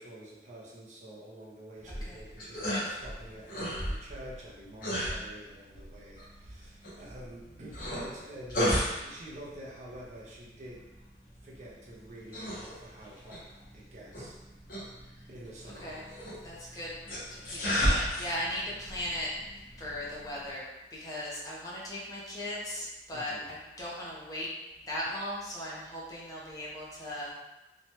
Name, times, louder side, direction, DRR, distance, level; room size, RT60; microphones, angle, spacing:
voice 1, 0.0-10.8 11.4-13.4 13.7-14.4 15.3-16.0 16.4-16.8 23.1-23.6, right 1 dB, 40° right, -4 dB, 0.5 m, -48 dB
Man struggles to carry things (animation), 1.8-20.5, equal, 50° left, 0.9 m, -36 dB
voice 2, 16.4-16.9 17.3-19.3 19.8-20.6 20.9-24.5 24.9-27.3, left 1 dB, 20° left, -6 dB, 0.6 m, -38 dB
3.0 x 2.2 x 2.8 m, 1.0 s
head